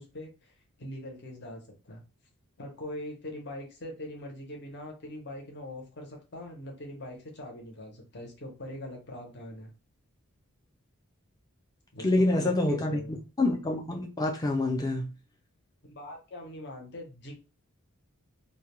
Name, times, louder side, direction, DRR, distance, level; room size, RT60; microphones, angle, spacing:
voice 1, 0.0-2.0 2.6-9.7 11.9-13.2 15.8-17.3, left 1 dB, 50° left, 0.7 m, -42 dB
voice 2, 12.0-13.0 13.4-15.1, left 2 dB, 15° left, 0.4 m, -26 dB
2.2 x 2.2 x 3.0 m
head